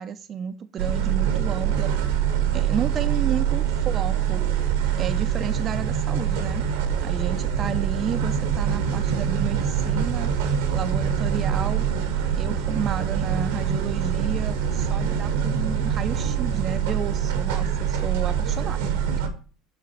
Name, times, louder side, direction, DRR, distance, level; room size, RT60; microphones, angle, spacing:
voice 1, 0.0-1.9 2.5-4.4 5.0-6.6 7.0-10.3 10.7-11.9 12.4-18.9, right 8 dB, 45° right, 9 dB, 0.4 m, -31 dB
sound 1, 0.8-19.3, right 8 dB, 75° right, 0.9 m, -24 dB
7.0 x 3.9 x 4.4 m, 0.39 s
hypercardioid pair, 75°, 0 cm